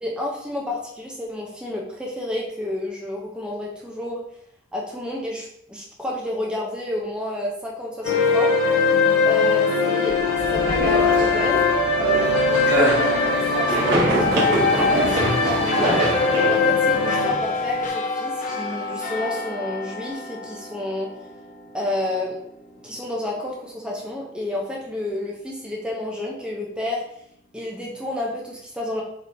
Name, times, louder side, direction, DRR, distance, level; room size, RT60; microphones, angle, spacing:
voice 1, 0.0-4.2 4.7-8.5 9.3-10.2 10.4-11.6 12.8-12.9 13.3-16.0 16.5-21.1 21.7-22.4 22.8-27.0 27.5-29.0, left 1 dB, 5° right, -3 dB, 0.6 m, -30 dB
sound 1, 8.0-17.3, left 4 dB, 90° left, 1.2 m, -20 dB
sound 2, 10.8-17.9, right 1 dB, 60° right, 1.0 m, -25 dB
sound 3, 13.0-23.8 24.2-24.3, left 3 dB, 40° left, 0.4 m, -30 dB
4.2 x 3.3 x 2.6 m, 0.74 s
head